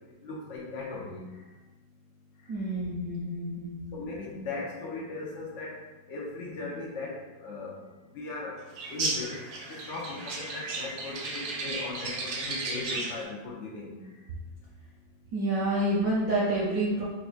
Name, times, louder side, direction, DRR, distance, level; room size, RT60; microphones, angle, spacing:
voice 1, 0.2-1.2 3.9-5.8 6.1-7.8 8.1-8.6 8.9-9.3 9.7-13.9, left 3 dB, 75° left, -4 dB, 0.7 m, -38 dB
voice 2, 2.5-3.8 15.3-17.0, right 1 dB, 65° right, -6 dB, 0.9 m, -28 dB
sound 1, 8.8-13.2, right 3 dB, 90° right, 1.5 m, -34 dB
4.5 x 2.4 x 2.5 m, 1.2 s
omnidirectional pair, 2.0 m